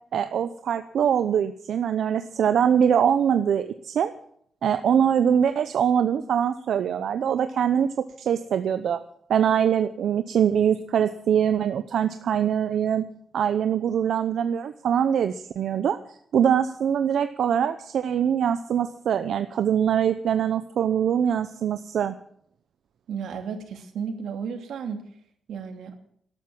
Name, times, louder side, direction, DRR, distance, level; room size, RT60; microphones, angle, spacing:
voice 1, 0.1-4.1 4.6-7.9 8.2-9.0 9.3-13.0 13.3-16.0 16.3-22.1, right 8 dB, 65° right, 10 dB, 0.8 m, -23 dB
voice 2, 23.1-25.0 25.5-25.9, right 6 dB, 85° right, 5 dB, 2.7 m, -33 dB
13.5 x 12.5 x 7.5 m, 0.64 s
wide cardioid pair, 170°, 0 cm